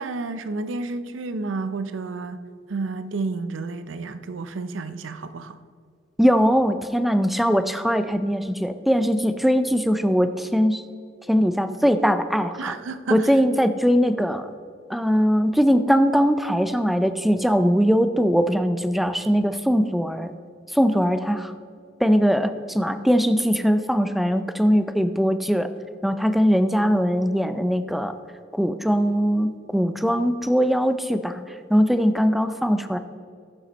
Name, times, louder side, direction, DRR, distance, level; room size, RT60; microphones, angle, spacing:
voice 1, 0.0-2.4 2.7-5.6 12.6-13.3, right 3 dB, 90° right, 11 dB, 0.6 m, -31 dB
voice 2, 6.2-10.8 11.3-12.7 13.1-14.5 14.9-20.3 20.7-21.5 22.0-25.7 26.0-28.1 28.5-31.4 31.7-33.0, equal, ahead, 10 dB, 0.4 m, -21 dB
14.5 x 6.0 x 4.1 m, 2.2 s
head